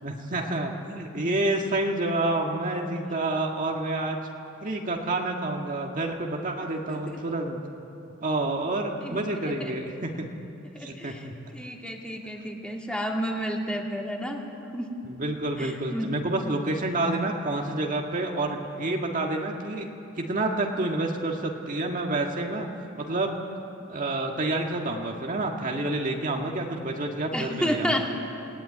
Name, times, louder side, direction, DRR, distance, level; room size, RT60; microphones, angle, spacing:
voice 1, 0.0-4.2 4.6-7.6 8.2-10.2 10.8-11.3 15.0-19.9 20.2-22.7 23.0-23.4 23.9-28.1, right 2 dB, 40° right, 1 dB, 1.7 m, -28 dB
voice 2, 6.9-7.2 9.0-9.2 9.6-9.8 10.7-11.3 11.5-14.4 14.7-14.9 15.6-16.2 23.8-23.9 27.3-28.1, equal, 5° left, 0 dB, 2.5 m, -31 dB
28.0 x 18.0 x 9.8 m, 2.8 s
head